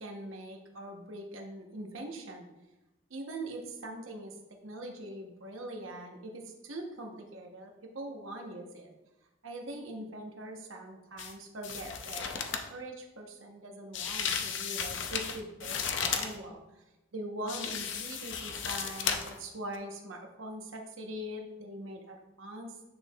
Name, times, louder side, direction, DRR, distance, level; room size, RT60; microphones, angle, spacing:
voice 1, 0.0-2.5 3.1-8.9 9.4-16.8 17.1-22.8, right 1 dB, 75° right, 2 dB, 1.0 m, -42 dB
sound 1, 11.2-11.3 11.6-12.7 13.9-16.4 17.5-19.4 19.7-19.8, left 7 dB, 60° left, 0.6 m, -34 dB
9.4 x 4.4 x 2.3 m, 1.0 s
head